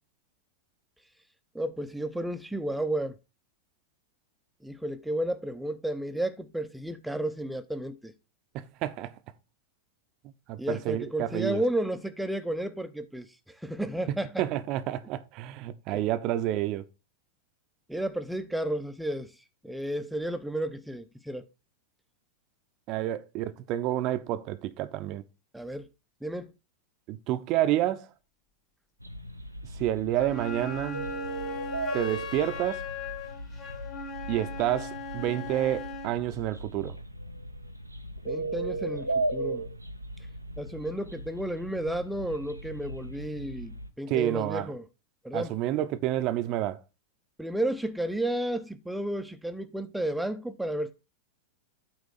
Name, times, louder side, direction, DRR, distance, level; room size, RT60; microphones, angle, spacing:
voice 1, 1.5-3.1 4.6-8.1 10.6-13.3 13.6-14.4 15.9-16.0 17.9-19.3 19.6-21.5 25.5-25.9 26.2-26.5 38.2-39.6 40.6-44.8 45.2-45.5 47.4-50.9, right 1 dB, ahead, 0.8 m, -32 dB
voice 2, 8.5-9.1 10.5-11.6 14.4-16.8 22.9-25.2 27.1-28.1 29.7-31.1 31.9-32.8 34.3-37.0 44.1-44.7 45.3-46.8, right 13 dB, 40° right, 0.8 m, -29 dB
sound 1, 29.0-43.9, right 2 dB, 85° right, 0.7 m, -37 dB
Wind instrument woodwind instrument, 30.1-36.2, left 4 dB, 30° left, 2.0 m, -39 dB
8.9 x 3.4 x 6.6 m
figure-of-eight pair, 90°, 0 cm